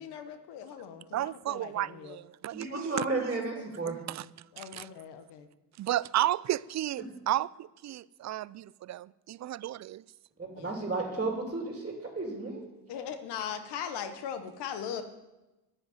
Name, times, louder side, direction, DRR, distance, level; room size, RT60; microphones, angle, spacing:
voice 1, 0.0-2.2 4.5-5.5 10.5-10.8 12.9-15.0, left 8 dB, 90° left, 1.2 m, -39 dB
voice 2, 1.1-3.4 3.8-4.2 4.6-4.9 5.8-10.0, right 13 dB, 45° right, 0.4 m, -33 dB
voice 3, 2.5-4.0 10.4-12.6, right 3 dB, 20° right, 3.1 m, -33 dB
10.5 x 7.9 x 9.4 m
cardioid pair, 80°, 39 cm